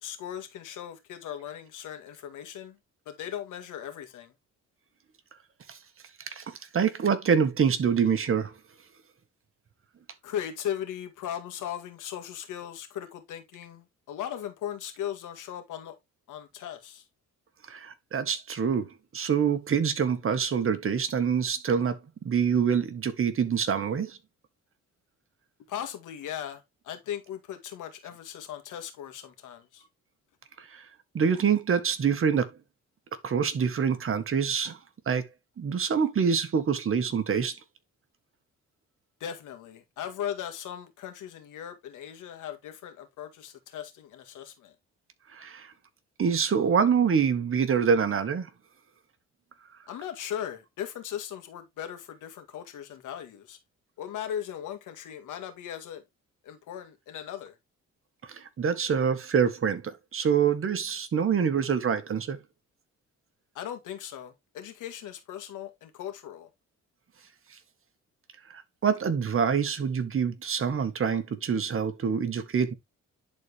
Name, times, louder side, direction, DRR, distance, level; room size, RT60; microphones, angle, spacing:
voice 1, 0.0-2.8 3.1-4.3 10.2-16.0 16.3-17.0 25.7-29.8 39.2-44.8 49.9-53.6 54.0-56.0 56.4-57.5 63.5-66.5, left 10 dB, 85° left, 2.2 m, -38 dB
voice 2, 6.3-8.5 17.7-22.0 22.2-24.2 30.6-30.9 31.1-32.5 33.2-34.8 35.0-35.2 35.6-37.5 45.3-45.7 46.2-48.5 58.3-62.4 68.5-72.7, right 6 dB, 45° right, 1.6 m, -26 dB
10.5 x 4.3 x 3.5 m
cardioid pair, 90°, 30 cm